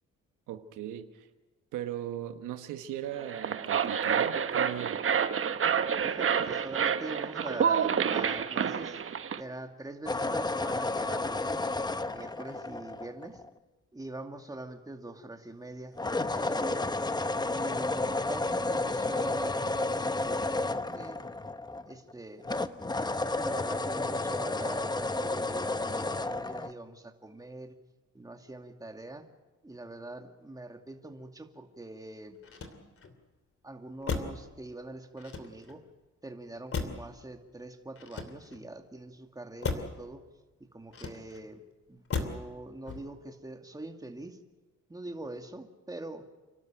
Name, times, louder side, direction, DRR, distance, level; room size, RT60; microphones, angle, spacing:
voice 1, 0.5-1.3 1.7-5.0, right 11 dB, 90° right, 8 dB, 1.3 m, -38 dB
sound 1, 3.2-9.4, right 7 dB, 45° right, 1.1 m, -28 dB
voice 2, 6.0-9.0 9.4-11.6 12.1-13.4 13.9-16.0 16.3-16.9 17.5-21.2 21.9-22.5 23.4-27.8 28.1-29.3 29.6-32.4 32.7-33.0 33.6-35.8 36.2-40.2 40.7-41.6 41.9-44.4 44.9-46.3, right 2 dB, 10° right, 4 dB, 2.4 m, -43 dB
sound 2, 10.1-13.5 16.0-22.1 22.4-26.7, left 2 dB, 15° left, 0.9 m, -31 dB
Motor vehicle (road), 32.4-33.2 34.0-34.5 35.2-35.9 36.7-37.2 38.0-38.7 39.6-40.0 40.9-41.5 42.1-42.5 42.8-43.3, left 4 dB, 50° left, 2.9 m, -36 dB
30.0 x 12.5 x 9.1 m, 1.2 s
cardioid pair, 90°, 30 cm